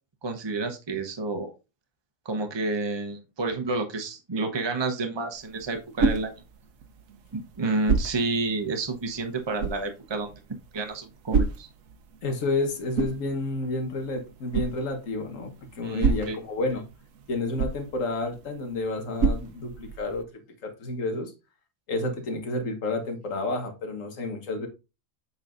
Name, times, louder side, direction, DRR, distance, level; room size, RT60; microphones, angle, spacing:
voice 1, 0.2-1.5 2.2-6.4 7.3-10.3 10.7-11.7 15.8-16.4, right 3 dB, 25° right, 0.8 m, -30 dB
sound 1, 5.3-20.2, right 5 dB, 75° right, 1.2 m, -32 dB
voice 2, 12.2-16.8 17.3-20.3 20.6-21.3 21.9-24.7, left 2 dB, 70° left, 1.7 m, -30 dB
7.1 x 5.5 x 2.5 m
omnidirectional pair, 1.4 m